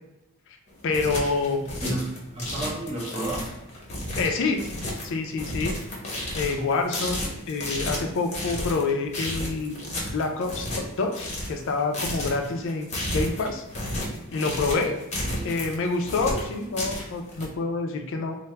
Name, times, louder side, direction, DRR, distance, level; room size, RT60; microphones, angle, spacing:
sound 1, 0.7-17.5, left 1 dB, 30° left, 0.7 m, -32 dB
voice 1, 0.8-1.6 4.2-4.6 5.0-5.8 6.3-7.2 7.5-9.8 10.1-13.6 14.3-15.0 15.4-18.4, left 3 dB, 55° left, 4 dB, 0.4 m, -27 dB
voice 2, 1.8-3.6 15.2-15.5, right 1 dB, 25° right, -4 dB, 0.8 m, -32 dB
3.3 x 2.0 x 3.2 m, 0.95 s
head